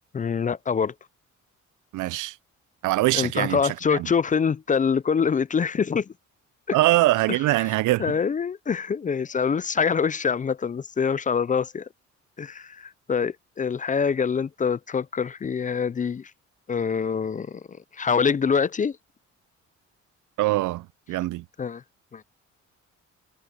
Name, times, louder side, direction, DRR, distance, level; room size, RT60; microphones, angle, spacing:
voice 1, 0.1-0.9 3.1-6.1 6.7-6.8 7.3-7.4 8.0-11.9 12.4-16.3 16.7-19.0 21.6-21.8 22.1-22.2, left 6 dB, 25° left, 0.4 m, -25 dB
voice 2, 1.9-2.4 2.8-4.1 6.7-8.1 20.4-21.4, right 18 dB, 85° right, 0.6 m, -23 dB
cardioid pair, 90°, 30 cm